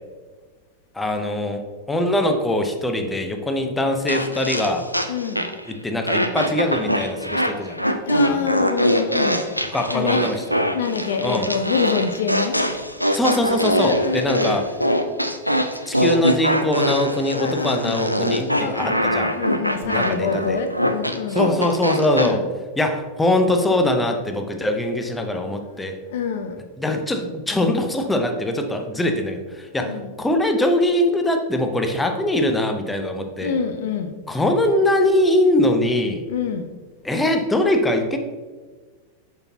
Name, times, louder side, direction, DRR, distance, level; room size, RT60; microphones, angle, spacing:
voice 1, 0.9-4.9 5.7-7.8 8.3-8.5 9.7-10.6 11.2-11.5 13.1-14.7 15.9-19.3 19.8-20.6 21.3-22.4 22.8-26.0 26.8-33.5 34.3-36.3 37.0-38.2, left 1 dB, 10° left, 5 dB, 0.7 m, -22 dB
sound 1, 4.1-5.7 6.1-22.3, equal, 90° right, 0.4 m, -23 dB
voice 2, 5.1-5.5 8.0-9.4 9.8-10.2 10.7-12.6 13.8-14.6 17.4-18.1 18.6-21.4 22.2-22.5 25.5-25.6 26.1-26.6 29.6-30.1 33.4-34.1 36.3-36.7, left 6 dB, 55° left, 7 dB, 0.5 m, -26 dB
6.7 x 5.9 x 2.8 m, 1.4 s
figure-of-eight pair, 90°, 0 cm